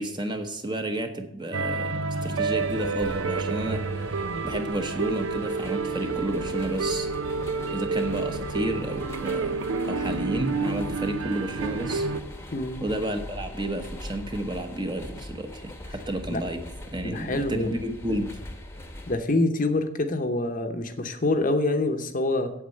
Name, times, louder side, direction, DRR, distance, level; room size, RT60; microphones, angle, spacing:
voice 1, 0.0-1.9 2.2-3.8 4.4-7.1 7.7-9.6 9.9-12.1 12.8-16.6 16.9-18.3, right 1 dB, 20° right, 6 dB, 1.0 m, -31 dB
sound 1, 1.5-12.2, right 4 dB, 70° right, 0.7 m, -29 dB
sound 2, 2.2-19.2, left 1 dB, 10° left, 1.0 m, -42 dB
voice 2, 12.5-12.9 16.3-16.4 17.0-17.8 19.1-22.5, left 2 dB, 40° left, 7 dB, 0.9 m, -26 dB
8.4 x 8.1 x 7.8 m, 0.82 s
head